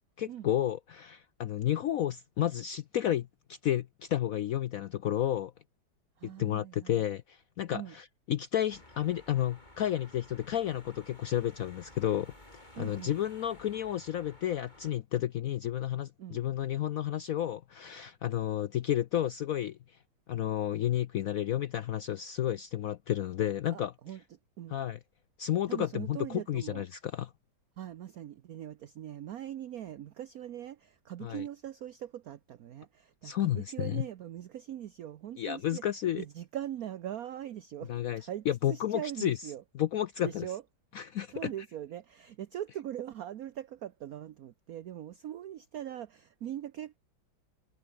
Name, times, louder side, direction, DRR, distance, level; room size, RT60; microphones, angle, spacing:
voice 1, 0.2-3.3 3.6-5.5 6.4-19.8 20.3-23.9 24.7-25.0 25.4-27.3 31.2-31.4 33.2-34.0 35.4-36.2 37.9-39.4 39.8-40.4 40.9-41.5, left 11 dB, 75° left, 0.7 m, -31 dB
voice 2, 6.2-7.0 7.7-7.9 12.8-13.1 16.2-16.4 23.7-24.8 25.7-26.9 27.8-35.8 36.1-39.6 40.2-40.6 41.3-47.0, right 11 dB, 60° right, 1.0 m, -41 dB
sound 1, 8.7-14.9, left 1 dB, 20° left, 5.8 m, -55 dB
omnidirectional pair, 2.1 m